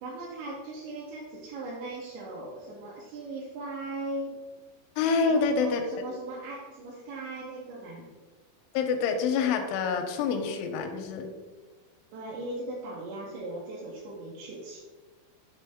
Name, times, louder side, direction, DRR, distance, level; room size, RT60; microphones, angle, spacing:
voice 1, 0.0-4.4 5.2-8.0 12.1-14.8, right 2 dB, 80° right, -5 dB, 2.9 m, -38 dB
voice 2, 5.0-5.9 8.7-11.3, left 5 dB, 85° left, 5 dB, 3.0 m, -27 dB
9.2 x 3.2 x 3.5 m, 1.3 s
omnidirectional pair, 5.5 m